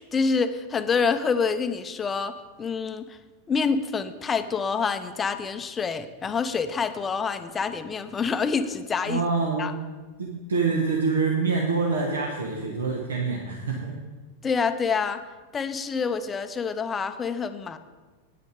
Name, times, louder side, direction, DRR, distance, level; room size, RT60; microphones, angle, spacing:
voice 1, 0.0-3.2 3.5-9.2 9.6-9.7 14.4-15.2 15.5-17.8, left 5 dB, 20° left, 10 dB, 0.6 m, -27 dB
voice 2, 9.1-9.8 10.2-14.0, right 4 dB, 70° right, 0 dB, 1.2 m, -26 dB
9.5 x 9.2 x 5.1 m, 1.3 s
figure-of-eight pair, 90°, 0 cm